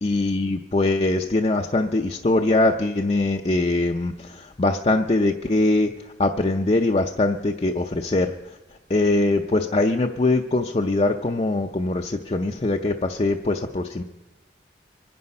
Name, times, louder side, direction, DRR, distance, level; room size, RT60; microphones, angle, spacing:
voice 1, 0.0-8.6 8.9-14.0, left 2 dB, 35° left, 4 dB, 0.5 m, -22 dB
24.0 x 9.7 x 5.4 m, 1.1 s
head